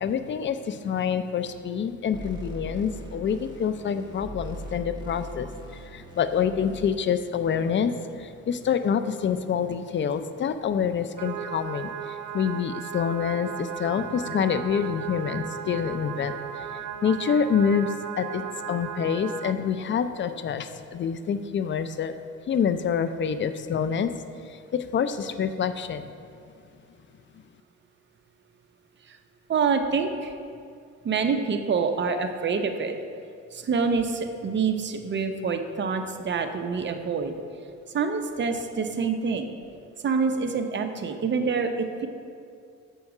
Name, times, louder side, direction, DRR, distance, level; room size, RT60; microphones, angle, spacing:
voice 1, 0.0-5.5 5.9-7.9 8.5-11.9 12.3-16.4 17.0-18.4 18.7-22.1 22.5-24.1 24.7-26.1, left 7 dB, 40° left, 10 dB, 0.4 m, -26 dB
sound 1, 2.1-6.9, right 1 dB, 15° right, 1.3 m, -40 dB
sound 2, 11.2-19.5, right 8 dB, 85° right, 0.5 m, -36 dB
voice 2, 29.5-30.3 31.0-33.0 33.5-37.3 37.9-39.5 40.0-42.1, right 5 dB, 40° right, 6 dB, 0.7 m, -26 dB
6.9 x 5.4 x 4.8 m, 2.3 s
cardioid pair, 90°, 30 cm